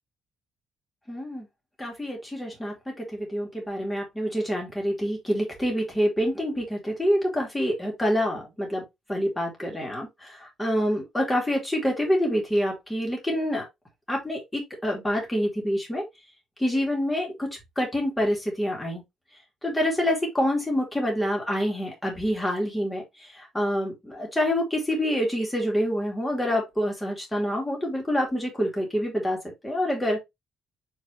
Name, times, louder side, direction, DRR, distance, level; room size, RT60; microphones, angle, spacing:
voice 1, 1.1-1.5 1.8-13.6 14.1-16.0 16.6-17.5 17.8-19.0 19.6-30.2, equal, 10° left, 2.6 m, -27 dB
7.8 x 3.9 x 3.1 m
cardioid pair, 170°, 0 cm